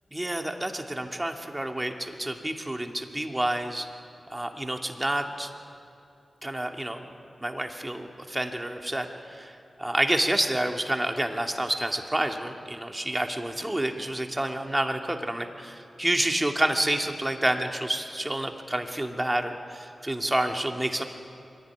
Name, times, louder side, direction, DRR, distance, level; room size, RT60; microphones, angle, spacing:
voice 1, 0.1-3.9 4.3-5.5 6.4-7.1 7.4-21.1, right 1 dB, 20° right, 4 dB, 2.5 m, -29 dB
22.5 x 16.5 x 9.7 m, 2.6 s
cardioid pair, 40°, 0 cm